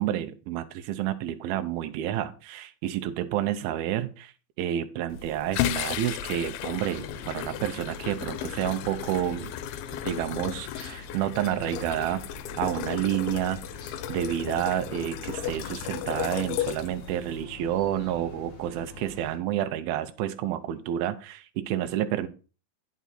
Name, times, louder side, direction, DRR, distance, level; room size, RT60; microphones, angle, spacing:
voice 1, 0.0-4.3 4.6-9.5 10.1-12.2 12.6-13.6 14.1-22.3, right 11 dB, 85° right, 8 dB, 2.5 m, -29 dB
sound 1, 5.1-17.4, left 12 dB, 85° left, 2.5 m, -34 dB
sound 2, 7.0-19.4, left 4 dB, 45° left, 2.3 m, -45 dB
9.4 x 6.1 x 4.1 m, 0.34 s
omnidirectional pair, 4.4 m